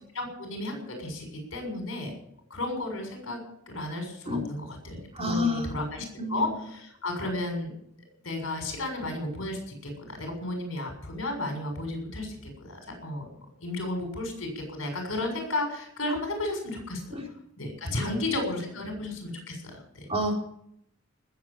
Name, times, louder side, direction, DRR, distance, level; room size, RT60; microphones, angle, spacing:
voice 1, 0.1-2.1 2.5-3.4 3.7-7.7 8.2-13.3 13.6-17.2 17.6-20.1, left 2 dB, 70° left, 3 dB, 6.8 m, -33 dB
voice 2, 5.1-5.7 6.2-6.5 17.1-17.2 17.9-18.1 20.1-20.3, left 1 dB, 30° right, 0 dB, 4.6 m, -29 dB
19.5 x 8.1 x 8.9 m, 0.73 s
head